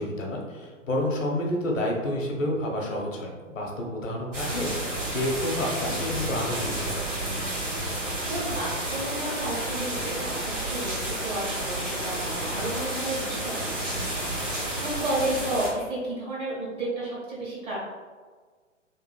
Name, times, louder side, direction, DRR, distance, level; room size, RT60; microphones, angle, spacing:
voice 1, 0.0-7.0, left 1 dB, 80° left, 0 dB, 0.8 m, -29 dB
sound 1, 4.3-15.7, right 1 dB, 70° right, 1.5 m, -31 dB
voice 2, 7.9-13.7 14.2-17.8, right 1 dB, 15° right, -7 dB, 0.6 m, -32 dB
3.0 x 2.5 x 2.2 m, 1.5 s
figure-of-eight pair, 115°, 38 cm